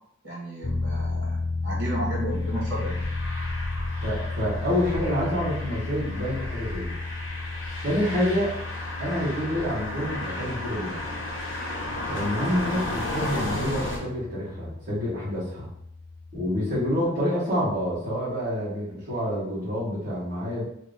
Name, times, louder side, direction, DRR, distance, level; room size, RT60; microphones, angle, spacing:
voice 1, 0.2-3.1, right 1 dB, 60° right, -4 dB, 1.3 m, -33 dB
sound 1, 0.6-17.0, left 3 dB, 35° left, 0.4 m, -34 dB
sound 2, 2.3-14.0, left 1 dB, 70° left, 1.2 m, -34 dB
voice 2, 4.0-6.9 7.8-8.5 9.0-11.1 12.1-15.7 16.3-20.6, equal, 45° right, -9 dB, 1.4 m, -28 dB
2.9 x 2.5 x 3.7 m, 0.74 s
head